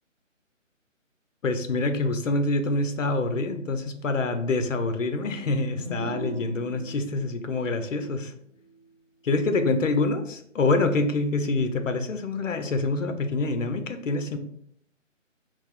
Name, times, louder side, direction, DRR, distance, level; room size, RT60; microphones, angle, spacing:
voice 1, 1.4-8.3 9.2-14.4, left 3 dB, 70° left, 8 dB, 0.7 m, -26 dB
sound 1, 5.2-8.9, right 1 dB, 25° right, 0.8 m, -40 dB
4.2 x 2.0 x 4.4 m, 0.69 s
figure-of-eight pair, 160°, 39 cm